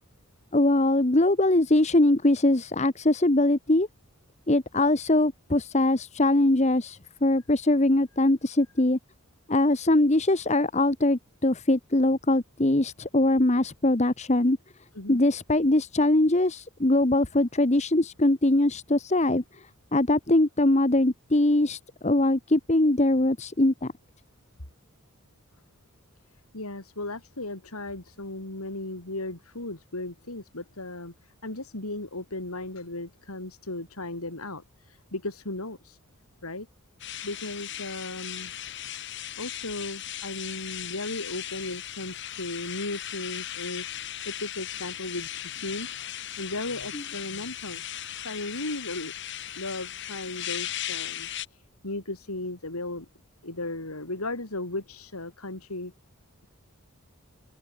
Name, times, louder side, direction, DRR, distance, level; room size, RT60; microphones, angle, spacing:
voice 1, 0.5-3.9 4.5-9.0 9.5-14.6 15.1-19.7 19.9-23.9 46.9-47.0, left 1 dB, 30° left, 1.1 m, -22 dB
voice 2, 26.3-36.0 36.4-36.7 37.2-38.5 39.4-43.9 44.2-47.8 48.2-49.1 49.6-53.1 53.4-55.9, left 2 dB, 85° left, 4.2 m, -36 dB
sound 1, 37.0-51.5, left 12 dB, 55° left, 3.5 m, -37 dB
head